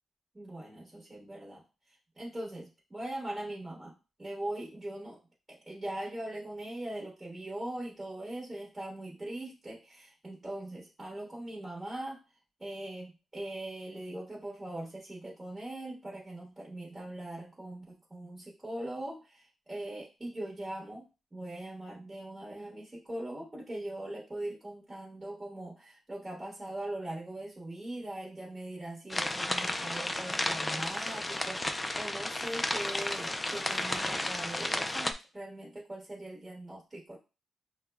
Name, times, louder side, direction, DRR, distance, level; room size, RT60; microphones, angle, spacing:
voice 1, 0.3-1.6 2.2-3.9 4.2-5.2 5.5-12.2 12.6-21.0 21.3-37.2, right 1 dB, 20° right, -3 dB, 1.1 m, -41 dB
sound 1, 29.1-35.1, left 1 dB, 15° left, 0.3 m, -33 dB
5.9 x 2.1 x 2.3 m, 0.30 s
cardioid pair, 125°, 0 cm